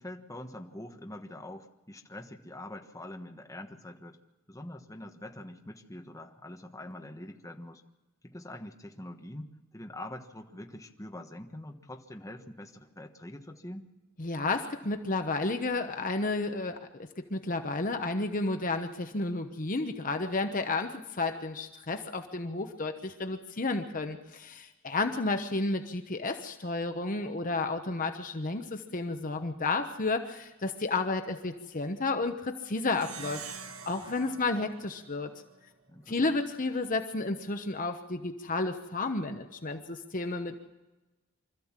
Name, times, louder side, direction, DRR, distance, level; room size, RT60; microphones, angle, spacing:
voice 1, 0.0-4.2 4.5-7.8 8.2-13.9 35.9-36.4, left 1 dB, 15° left, 3 dB, 1.3 m, -44 dB
voice 2, 14.2-35.3 36.1-40.6, left 3 dB, 40° left, 6 dB, 1.0 m, -32 dB
Plucked string instrument, 32.9-35.7, right 6 dB, 70° right, 1.3 m, -45 dB
25.0 x 14.0 x 7.4 m, 1.1 s
head